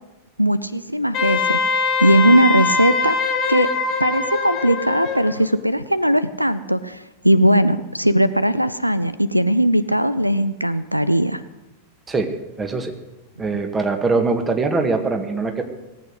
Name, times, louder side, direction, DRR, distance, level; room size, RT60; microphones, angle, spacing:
voice 1, 0.4-1.6 2.0-3.2 3.5-3.7 4.0-11.4, right 1 dB, 90° right, 15 dB, 0.5 m, -18 dB
Wind instrument woodwind instrument, 1.1-5.4, left 5 dB, 35° left, 1.9 m, -22 dB
voice 2, 12.6-12.9 13.4-15.6, right 3 dB, 15° right, 6 dB, 1.9 m, -22 dB
18.5 x 8.5 x 7.9 m, 1.1 s
figure-of-eight pair, 90°, 0 cm